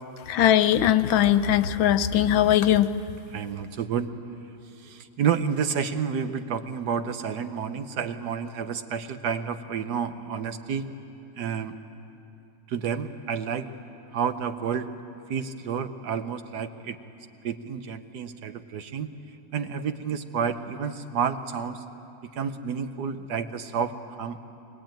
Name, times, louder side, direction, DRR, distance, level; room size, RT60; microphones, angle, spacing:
voice 1, 0.3-2.9, left 11 dB, 85° left, 12 dB, 1.5 m, -20 dB
voice 2, 3.3-4.1 4.8-10.9 11.3-11.7 12.7-13.7 14.1-14.9 15.3-17.0 17.4-19.1 19.5-21.8 22.2-23.9 24.2-24.4, right 7 dB, 65° right, 9 dB, 1.3 m, -30 dB
22.5 x 21.0 x 9.0 m, 2.8 s
omnidirectional pair, 2.1 m